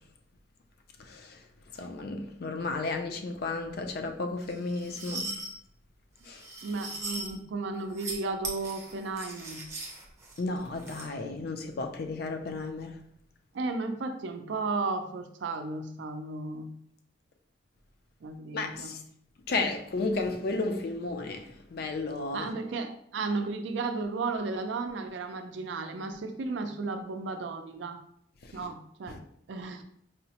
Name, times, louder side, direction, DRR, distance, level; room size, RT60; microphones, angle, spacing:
voice 1, 1.0-1.4 1.8-5.3 6.3-6.4 10.4-13.0 18.5-19.0 19.5-22.5 29.1-29.2, left 3 dB, 55° left, 0.4 m, -33 dB
sound 1, 4.4-5.5 6.2-7.3 7.8-8.1 8.4-11.1, right 2 dB, 15° right, 0.6 m, -39 dB
voice 2, 6.6-9.7 13.5-16.7 18.2-19.0 22.3-28.0 28.5-29.2 29.5-29.8, right 3 dB, 70° right, 0.4 m, -34 dB
4.7 x 2.0 x 2.8 m
head